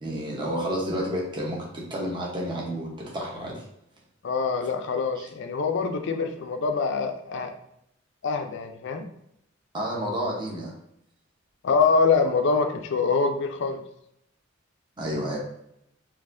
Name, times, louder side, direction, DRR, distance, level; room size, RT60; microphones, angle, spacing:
voice 1, 0.0-3.6 5.2-5.3 9.7-10.7 15.0-15.4, equal, 25° right, -3 dB, 0.9 m, -30 dB
voice 2, 4.2-7.5 8.2-9.1 11.6-13.8, left 4 dB, 65° left, 6 dB, 0.4 m, -24 dB
4.1 x 2.5 x 2.5 m, 0.77 s
head